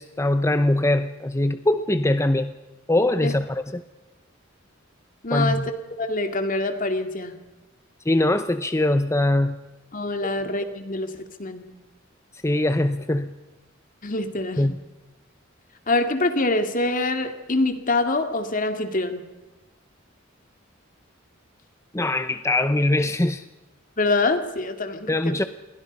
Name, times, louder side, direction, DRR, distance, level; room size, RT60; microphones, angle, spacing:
voice 1, 0.0-2.5 2.9-3.8 5.3-5.7 8.1-9.6 12.4-13.3 14.6-14.8 21.9-23.4 25.1-25.5, left 1 dB, 15° left, 10 dB, 0.7 m, -22 dB
voice 2, 5.2-5.6 6.0-7.3 9.9-11.6 14.0-14.7 15.9-19.2 24.0-25.4, left 2 dB, 40° left, 7 dB, 2.3 m, -25 dB
29.0 x 22.5 x 5.4 m, 1.1 s
head